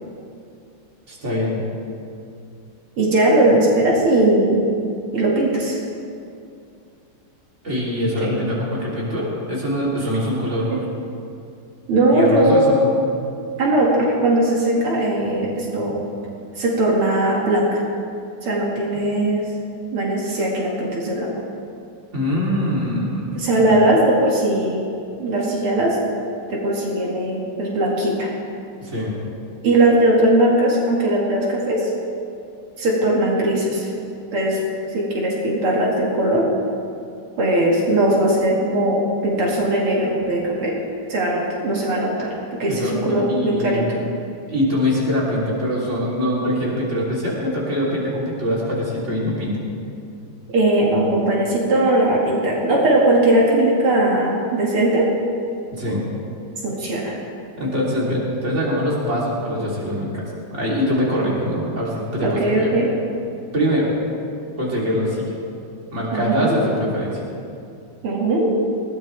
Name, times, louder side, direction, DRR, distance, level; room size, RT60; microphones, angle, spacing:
voice 1, 1.1-1.6 7.6-10.9 12.1-12.9 22.1-23.3 23.7-23.8 28.8-29.1 42.7-43.9 44.5-49.6 55.7-56.0 57.6-62.7 63.5-63.9 64.6-65.2 65.9-67.2, equal, 30° right, -5 dB, 3.6 m, -23 dB
voice 2, 3.0-4.6 5.1-5.8 8.2-8.4 10.7-10.8 11.9-12.8 13.6-15.9 16.6-17.8 18.4-19.4 19.9-21.3 23.3-24.8 25.2-26.0 26.5-28.3 29.6-31.9 32.8-33.9 34.3-34.6 34.9-36.5 37.4-40.7 41.1-43.8 50.5-55.1 56.6-57.2 62.2-62.9 66.1-66.6 68.0-68.5, right 1 dB, 80° right, -3 dB, 3.1 m, -19 dB
20.0 x 17.0 x 3.4 m, 2.5 s
omnidirectional pair, 2.4 m